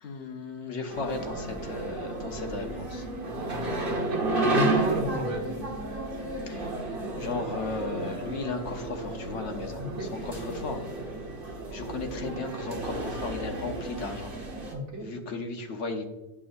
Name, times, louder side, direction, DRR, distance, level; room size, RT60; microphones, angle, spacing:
voice 1, 0.0-3.1 6.4-6.7 7.2-11.2 11.7-14.3 15.0-16.0, left 3 dB, 75° left, 4 dB, 1.3 m, -35 dB
sound 1, 0.9-14.7, right 2 dB, 50° right, 1.8 m, -32 dB
voice 2, 4.1-5.5 9.8-10.2 14.7-15.1, equal, 75° right, 1 dB, 1.5 m, -32 dB
11.0 x 6.1 x 2.6 m, 1.1 s
omnidirectional pair, 1.2 m